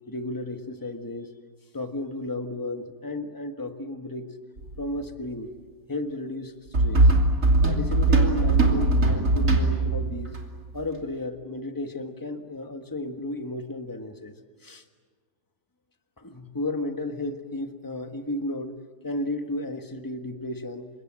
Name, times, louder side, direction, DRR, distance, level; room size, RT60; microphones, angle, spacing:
voice 1, 0.1-1.3 1.7-4.3 4.8-5.5 5.9-6.5 6.8-7.1 7.6-10.3 10.7-14.3 14.6-14.8 16.2-18.7 19.0-20.9, left 1 dB, 10° left, 6 dB, 1.5 m, -33 dB
sound 1, 4.6-4.8 6.7-10.4, right 2 dB, 50° right, 3.2 m, -20 dB
29.0 x 26.0 x 7.6 m, 1.5 s
omnidirectional pair, 1.8 m